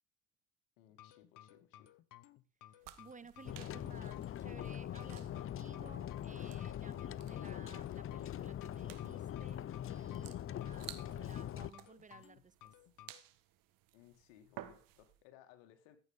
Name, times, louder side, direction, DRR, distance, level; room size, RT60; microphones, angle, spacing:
voice 1, 0.8-2.0 7.5-8.0 13.9-16.0, left 11 dB, 80° left, 2.1 m, -62 dB
sound 1, 1.0-13.2, left 12 dB, 60° left, 1.1 m, -59 dB
voice 2, 2.7-12.7, right 5 dB, 20° right, 0.8 m, -57 dB
sound 2, 2.8-15.2, right 14 dB, 70° right, 1.5 m, -57 dB
sound 3, 3.4-11.7, left 11 dB, 35° left, 0.6 m, -42 dB
14.5 x 8.6 x 3.7 m
hypercardioid pair, 75°, 36 cm